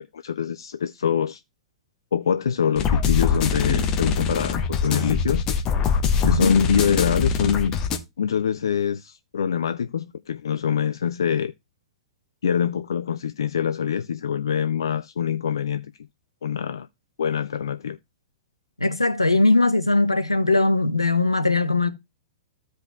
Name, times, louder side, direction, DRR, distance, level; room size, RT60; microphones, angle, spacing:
voice 1, 0.0-1.4 2.1-5.4 6.2-7.8 8.2-11.5 12.4-15.9 16.4-16.9 17.2-18.0, left 8 dB, 65° left, 0.4 m, -24 dB
sound 1, 2.8-8.0, left 6 dB, 25° left, 1.1 m, -23 dB
voice 2, 6.2-6.6 18.8-21.9, left 2 dB, 85° left, 0.9 m, -20 dB
14.5 x 5.2 x 2.3 m
figure-of-eight pair, 105°, 3 cm